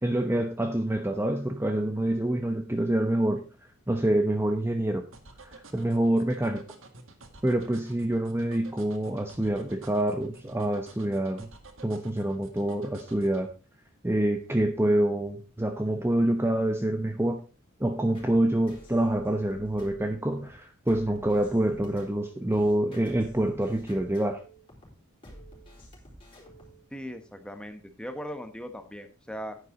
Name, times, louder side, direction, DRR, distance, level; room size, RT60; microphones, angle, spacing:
voice 1, 0.0-3.4 3.9-5.0 5.4-6.6 7.4-11.5 11.8-13.5 14.0-17.4 17.8-24.4, right 1 dB, 10° right, 5 dB, 0.9 m, -26 dB
sound 1, 5.1-13.4, right 3 dB, 70° right, 1.8 m, -49 dB
sound 2, 18.1-26.8, equal, 25° left, 4.3 m, -50 dB
voice 2, 26.9-29.6, equal, 5° left, 7 dB, 1.3 m, -39 dB
10.0 x 9.9 x 3.9 m, 0.33 s
head